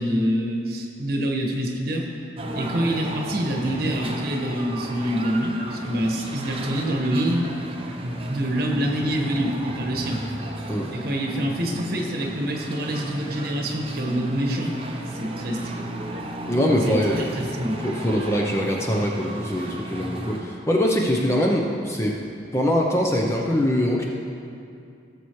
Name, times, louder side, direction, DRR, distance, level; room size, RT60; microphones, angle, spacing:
voice 1, 0.0-2.1 2.5-7.4 8.0-10.2 10.9-14.7 15.1-15.9 16.9-17.8, equal, 55° right, 0 dB, 1.4 m, -26 dB
sound 1, 2.4-20.4, right 1 dB, 30° right, 0.8 m, -34 dB
voice 2, 16.5-17.3 17.8-22.2 22.5-24.0, equal, 15° left, -1 dB, 0.6 m, -23 dB
17.0 x 7.0 x 3.2 m, 2.5 s
head